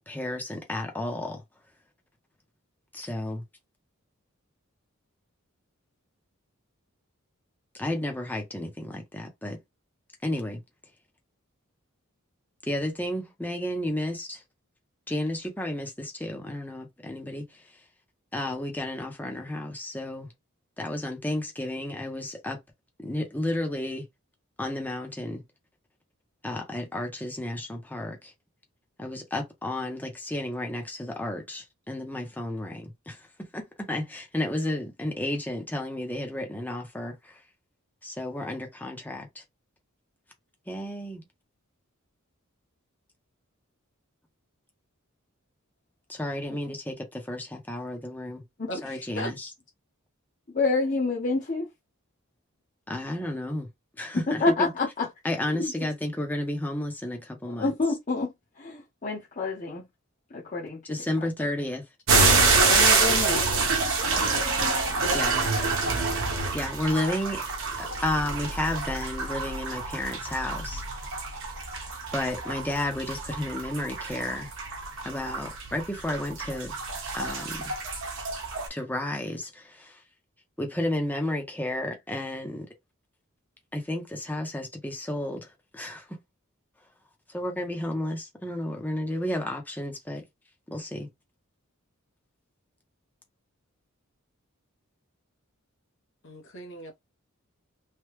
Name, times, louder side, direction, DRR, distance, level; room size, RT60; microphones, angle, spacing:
voice 1, 0.0-1.4 2.9-3.4 7.8-9.6 10.2-10.6 12.6-14.4 15.1-17.6 18.3-20.3 20.8-22.6 23.0-24.1 24.6-25.4 26.4-28.3 29.0-37.4 38.0-39.4 40.7-41.2 46.1-48.4 48.8-49.5 52.9-53.7 54.0-54.7 55.2-57.7 60.9-61.8 65.1-65.4 66.5-67.4 67.8-70.8 72.1-74.5 75.0-76.7 77.1-77.8 78.7-80.0 80.6-82.7 83.7-85.5 85.7-86.1 87.3-90.2 90.7-91.1, left 1 dB, 10° left, 0.7 m, -32 dB
voice 2, 48.7-49.3 96.2-96.9, equal, 60° left, 0.9 m, -37 dB
voice 3, 50.6-51.7 54.4-55.1 57.5-58.3 58.6-59.9 60.3-60.8 62.6-63.4, left 3 dB, 40° left, 0.9 m, -27 dB
sound 1, 62.1-78.7, right 3 dB, 65° right, 0.9 m, -27 dB
3.3 x 2.2 x 3.1 m
head